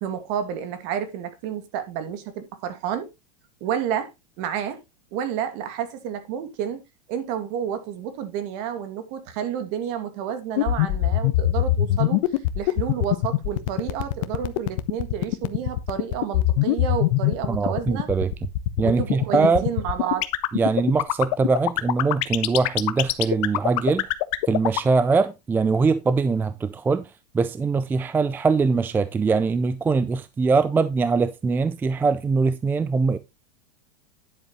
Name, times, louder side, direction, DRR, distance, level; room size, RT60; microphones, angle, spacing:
voice 1, 0.0-3.1 3.6-4.1 4.4-4.8 5.1-6.8 7.1-12.2 12.5-18.1 18.8-20.3, right 9 dB, 50° right, 2.4 m, -30 dB
sound 1, 10.6-24.9, left 17 dB, 55° left, 1.1 m, -21 dB
voice 2, 17.5-18.3 18.8-19.7 20.5-24.1 24.5-33.2, right 4 dB, 10° right, 0.4 m, -22 dB
10.5 x 7.3 x 3.1 m
supercardioid pair, 145°, 21 cm